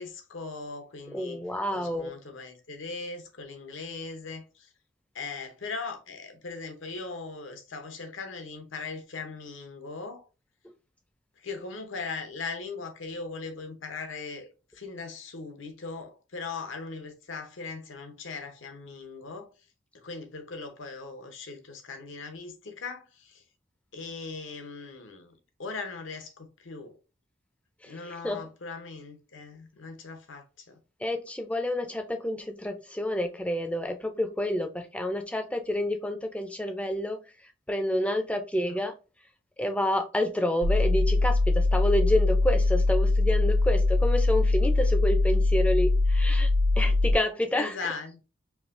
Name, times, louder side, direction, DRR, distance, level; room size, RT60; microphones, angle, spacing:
voice 1, 0.0-1.4 1.7-4.7 5.1-10.2 11.4-14.5 14.7-19.5 19.9-23.4 23.9-25.3 25.6-26.9 27.9-30.8 38.6-38.8 47.5-48.2, left 4 dB, 85° left, 0.8 m, -39 dB
voice 2, 1.1-2.1 27.8-27.9 28.2-28.4 31.0-37.2 37.7-38.9 39.6-46.5 46.8-47.7, left 1 dB, 5° left, 0.4 m, -29 dB
sound 1, 40.6-47.1, left 2 dB, 80° right, 0.5 m, -22 dB
4.7 x 2.7 x 2.5 m
head